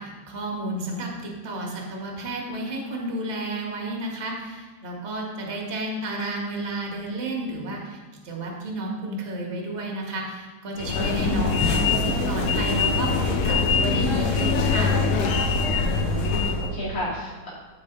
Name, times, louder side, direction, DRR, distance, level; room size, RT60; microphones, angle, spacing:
voice 1, 0.0-8.0 8.2-15.0, right 2 dB, 30° right, -1 dB, 1.4 m, -31 dB
sound 1, 10.8-16.7, left 4 dB, 65° left, 1.6 m, -23 dB
voice 2, 15.8-17.5, left 2 dB, 25° left, -9 dB, 3.6 m, -32 dB
14.0 x 5.5 x 4.0 m, 1.3 s
omnidirectional pair, 3.5 m